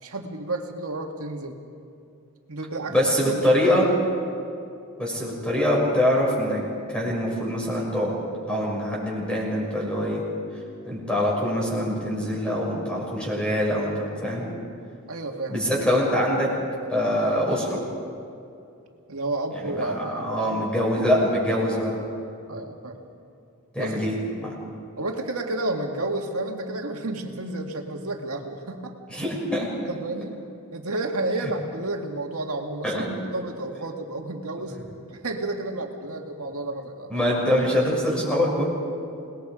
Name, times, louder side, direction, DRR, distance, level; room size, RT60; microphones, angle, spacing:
voice 1, 0.0-1.6 2.5-2.9 3.2-3.9 15.1-15.6 19.1-20.7 22.5-23.0 23.8-23.9 25.0-28.9 29.9-30.4 30.7-34.8 35.1-37.1, right 2 dB, 80° right, 2 dB, 2.2 m, -31 dB
voice 2, 2.9-3.9 5.0-6.6 6.9-8.2 8.5-10.2 10.9-14.4 15.5-16.5 16.9-17.8 19.6-22.0 23.7-24.5 29.1-29.7 32.8-33.0 37.1-38.6, equal, 5° left, -4 dB, 6.4 m, -24 dB
28.5 x 20.0 x 5.1 m, 2.5 s
head